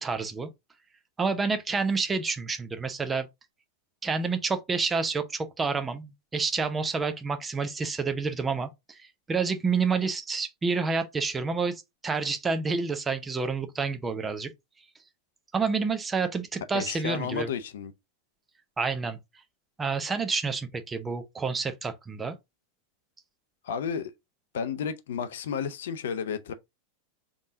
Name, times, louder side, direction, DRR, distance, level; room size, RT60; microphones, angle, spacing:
voice 1, 0.0-0.5 1.2-3.3 4.0-14.5 15.5-17.5 18.8-19.2 19.8-22.3, right 4 dB, 15° right, 0.6 m, -29 dB
voice 2, 16.7-17.9 23.6-24.1 24.5-26.5, left 7 dB, 60° left, 0.6 m, -32 dB
3.9 x 3.6 x 2.6 m
figure-of-eight pair, 90°, 0 cm